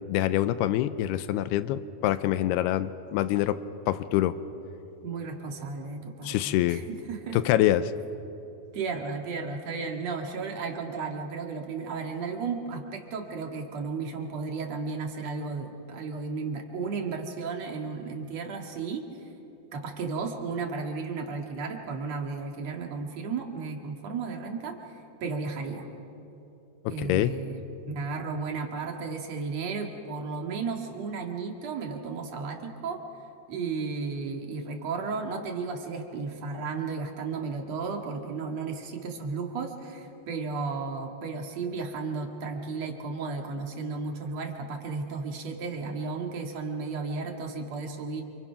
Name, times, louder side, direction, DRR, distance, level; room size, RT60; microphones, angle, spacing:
voice 1, 0.1-3.6 3.9-4.3 6.2-6.8 7.3-7.9 26.9-27.3, left 13 dB, 90° left, 13 dB, 2.8 m, -25 dB
voice 2, 5.0-7.4 8.7-19.3 19.7-25.9 26.9-33.0 33.5-48.2, right 4 dB, 50° right, 2 dB, 2.7 m, -34 dB
28.5 x 26.5 x 5.8 m, 2.8 s
omnidirectional pair, 4.6 m